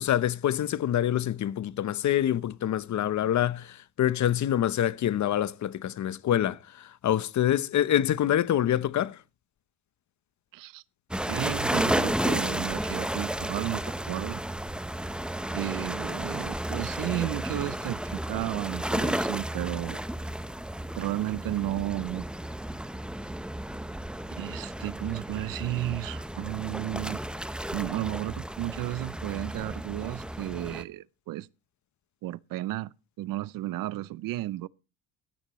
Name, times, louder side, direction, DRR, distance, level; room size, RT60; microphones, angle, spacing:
voice 1, 0.0-9.2, left 11 dB, 50° left, 0.9 m, -26 dB
voice 2, 10.5-10.8 11.3-14.4 15.5-20.0 21.0-22.3 24.4-27.2 27.7-31.5 32.2-34.7, right 16 dB, 65° right, 0.6 m, -33 dB
sound 1, 11.1-30.8, right 1 dB, 5° right, 0.8 m, -32 dB
15.0 x 14.0 x 3.1 m
supercardioid pair, 85°, 36 cm